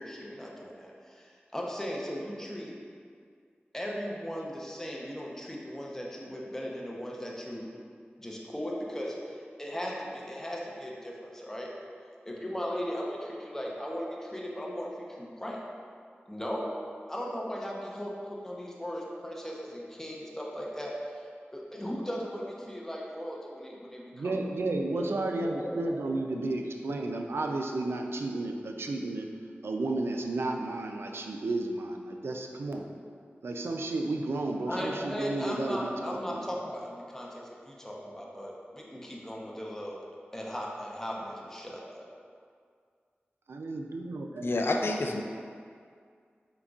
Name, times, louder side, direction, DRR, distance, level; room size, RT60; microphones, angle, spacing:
voice 1, 0.0-2.7 3.7-7.6 8.2-11.7 12.2-14.9 15.2-15.6 16.3-16.7 17.1-24.4 24.9-26.6 34.7-40.0 40.3-42.0, equal, 10° left, -3 dB, 0.8 m, -37 dB
voice 2, 24.1-29.3 29.6-32.8 33.4-36.4 43.5-44.5, right 2 dB, 80° right, 3 dB, 0.3 m, -32 dB
voice 3, 44.4-45.2, left 2 dB, 75° left, 2 dB, 0.4 m, -28 dB
4.3 x 3.9 x 2.4 m, 2.1 s
cardioid pair, 40°, 4 cm